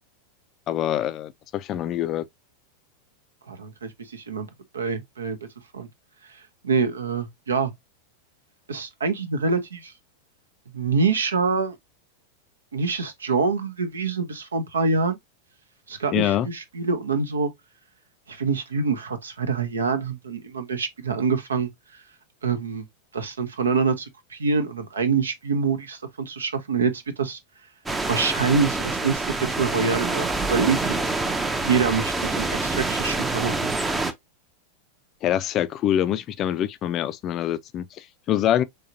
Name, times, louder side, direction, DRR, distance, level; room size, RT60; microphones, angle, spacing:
voice 1, 0.7-2.3 16.1-16.5 35.2-38.6, left 11 dB, 35° left, 0.4 m, -25 dB
voice 2, 3.5-4.5 4.7-5.4 5.7-5.9 6.6-7.7 8.7-9.9 10.7-11.8 12.7-15.2 15.9-17.5 18.3-21.7 22.4-22.8 23.1-27.4 28.1-31.0 31.6-33.7, right 5 dB, 70° right, 0.7 m, -25 dB
sound 1, 27.9-34.1, right 3 dB, 10° right, 0.6 m, -26 dB
3.7 x 3.4 x 2.7 m
figure-of-eight pair, 90°, 0 cm